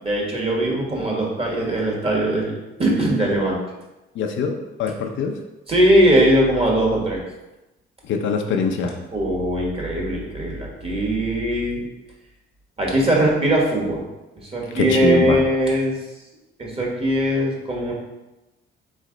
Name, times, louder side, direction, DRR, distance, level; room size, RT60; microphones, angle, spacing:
voice 1, 0.0-3.6 5.7-7.2 9.1-11.8 12.8-14.0 14.4-16.0 16.6-17.9, right 1 dB, 30° right, -2 dB, 1.4 m, -20 dB
voice 2, 4.2-5.4 8.1-9.0 14.7-15.4, left 5 dB, 70° left, 3 dB, 0.6 m, -23 dB
4.0 x 3.2 x 3.8 m, 1.0 s
cardioid pair, 90°, 20 cm